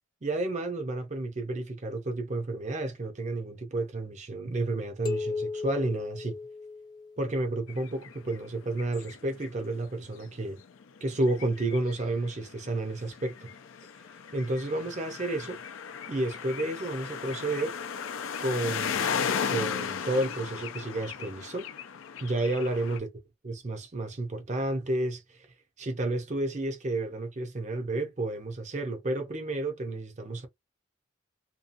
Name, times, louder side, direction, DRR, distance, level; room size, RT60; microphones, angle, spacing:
voice 1, 0.2-6.4 7.2-10.6 11.0-13.5 14.3-15.6 16.1-17.7 18.4-19.0 19.4-21.7 22.2-23.1 23.4-25.5 25.8-30.5, right 2 dB, 35° right, 0.6 m, -31 dB
sound 1, 5.0-7.5, left 4 dB, 20° left, 0.5 m, -35 dB
sound 2, 7.7-9.5 9.8-9.9 10.2-23.0, left 7 dB, 75° left, 0.4 m, -36 dB
2.7 x 2.3 x 2.5 m
head